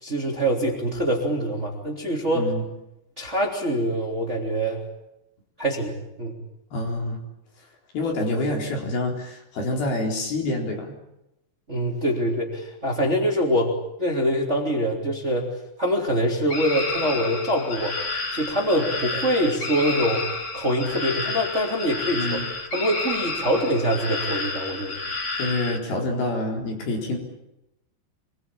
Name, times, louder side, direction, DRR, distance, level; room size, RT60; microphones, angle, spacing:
voice 1, 0.0-2.5 3.2-4.8 5.6-6.3 11.7-13.7 14.0-15.5 15.8-18.0 18.3-20.3 20.5-22.4 22.7-25.0, equal, 15° right, 1 dB, 3.1 m, -24 dB
voice 2, 6.7-7.2 7.9-10.9 22.2-22.5 25.4-27.2, left 2 dB, 60° left, 1 dB, 5.9 m, -27 dB
sound 1, 16.5-25.8, left 3 dB, 30° left, 4.6 m, -30 dB
26.5 x 21.0 x 8.7 m, 0.89 s
omnidirectional pair, 4.9 m